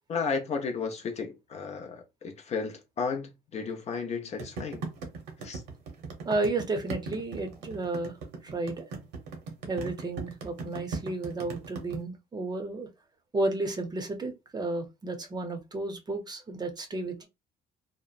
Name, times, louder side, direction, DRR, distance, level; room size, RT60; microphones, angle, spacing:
voice 1, 0.1-4.8 5.4-5.6, left 5 dB, 40° left, 0.6 m, -33 dB
sound 1, 4.4-12.0, right 4 dB, 90° right, 0.9 m, -37 dB
voice 2, 6.2-8.2 8.4-8.9 9.7-12.9 13.3-17.3, right 2 dB, 25° right, 0.6 m, -32 dB
2.9 x 2.0 x 2.4 m
cardioid pair, 110°, 17 cm